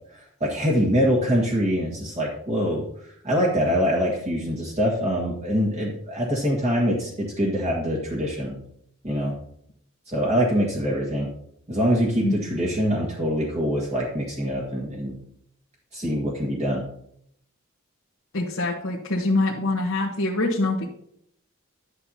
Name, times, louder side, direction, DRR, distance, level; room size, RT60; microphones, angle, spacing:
voice 1, 0.1-8.6 9.0-9.4 10.1-11.3 11.7-15.2 15.9-16.8, equal, 30° right, -4 dB, 1.7 m, -24 dB
voice 2, 18.3-20.9, left 2 dB, 70° left, -4 dB, 1.2 m, -24 dB
12.0 x 7.6 x 2.8 m, 0.71 s
head